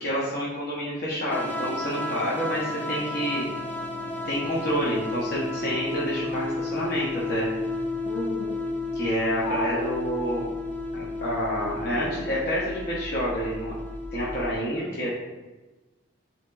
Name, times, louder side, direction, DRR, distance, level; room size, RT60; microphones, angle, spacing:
voice 1, 0.0-3.5 4.3-7.5 8.9-10.5 10.9-13.7 14.1-15.1, equal, 55° left, -7 dB, 0.8 m, -28 dB
sound 1, 1.3-14.5, left 2 dB, 10° left, 0.4 m, -32 dB
voice 2, 8.0-8.6 9.4-9.9, left 1 dB, 80° left, -4 dB, 0.6 m, -31 dB
7.7 x 2.8 x 2.3 m, 1.2 s
head